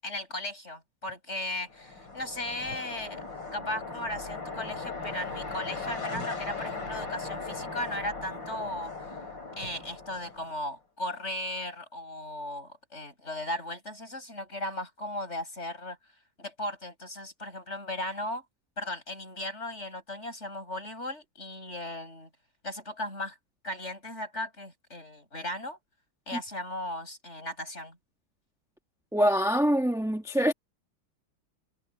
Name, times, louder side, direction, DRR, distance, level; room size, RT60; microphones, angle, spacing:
voice 1, 0.0-8.9 9.6-16.0 16.4-18.4 18.8-22.3 22.6-23.4 23.6-25.8 26.3-28.0, left 1 dB, 30° left, 8.3 m, -36 dB
sound 1, 1.6-10.7, left 4 dB, 55° left, 5.6 m, -38 dB
voice 2, 29.1-30.5, equal, ahead, 1.1 m, -24 dB
omnidirectional pair, 2.3 m